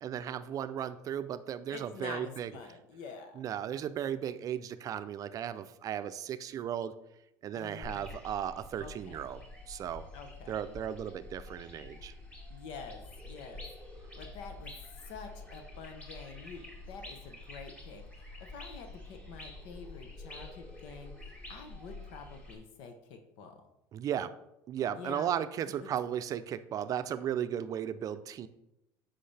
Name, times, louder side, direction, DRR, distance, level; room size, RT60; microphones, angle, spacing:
voice 1, 0.0-2.5 3.4-6.9 7.4-9.4 9.7-10.0 10.5-12.1 23.9-24.3 24.7-28.5, right 9 dB, 45° right, 12 dB, 0.5 m, -35 dB
voice 2, 1.7-3.4 4.1-4.2 7.5-8.1 8.8-9.2 10.1-10.6 12.5-13.6 14.2-14.7 15.1-23.6 24.9-25.3 25.8-25.9, left 5 dB, 70° left, 6 dB, 1.0 m, -47 dB
sound 1, 7.8-22.5, left 2 dB, 15° left, 2.1 m, -48 dB
7.7 x 5.6 x 3.4 m, 0.87 s
supercardioid pair, 110°, 9 cm